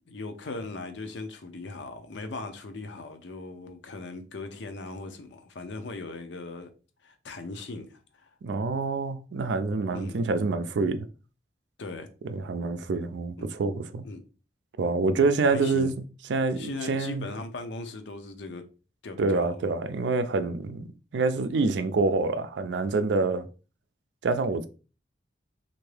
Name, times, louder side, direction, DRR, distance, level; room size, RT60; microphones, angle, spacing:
voice 1, 0.1-6.7 7.0-8.3 9.9-10.2 11.8-12.1 13.4-13.5 14.0-14.2 15.5-15.9 16.6-18.6 19.0-19.7, left 3 dB, 80° left, 0.6 m, -39 dB
voice 2, 8.4-11.0 12.2-14.0 14.8-15.9 16.3-17.3 19.2-20.9 21.1-23.5 24.2-24.7, right 3 dB, 75° right, 0.4 m, -26 dB
3.5 x 2.6 x 3.3 m
head